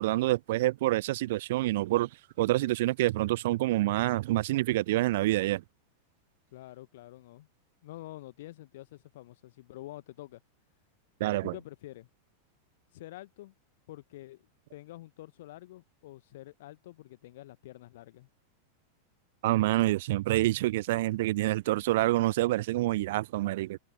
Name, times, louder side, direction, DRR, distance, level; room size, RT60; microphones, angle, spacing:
voice 1, 0.0-2.1 2.4-5.6 11.2-11.5 19.4-23.8, right 17 dB, 55° right, 0.3 m, -27 dB
voice 2, 6.5-7.5 7.8-10.4 11.4-12.1 12.9-13.5 13.9-14.4 14.7-18.3 21.7-21.8, left 16 dB, 55° left, 1.0 m, -47 dB
figure-of-eight pair, 90°, 0 cm